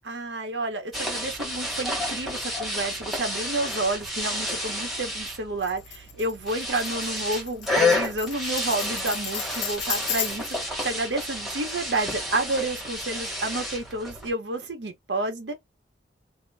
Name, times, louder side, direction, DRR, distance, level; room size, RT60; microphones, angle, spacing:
voice 1, 0.0-15.5, right 2 dB, 70° right, 0.9 m, -30 dB
sound 1, 0.9-14.3, left 1 dB, ahead, 1.0 m, -30 dB
Tambourine, 5.6-10.6, left 9 dB, 75° left, 0.7 m, -34 dB
2.8 x 2.1 x 3.3 m
head